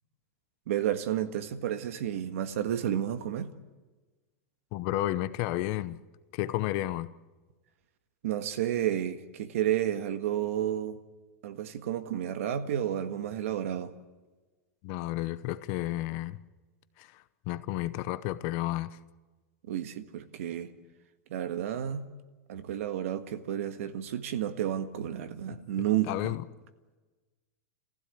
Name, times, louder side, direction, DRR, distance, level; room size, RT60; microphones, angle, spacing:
voice 1, 0.7-3.5 8.2-11.0 11.4-13.9 19.6-20.7 21.3-22.1 22.5-26.3, right 11 dB, 65° right, 1.6 m, -31 dB
voice 2, 4.7-6.0 6.3-7.1 14.8-16.4 17.0-19.0 26.1-26.4, left 15 dB, 35° left, 0.7 m, -32 dB
28.0 x 15.5 x 8.5 m
supercardioid pair, 170°, 8 cm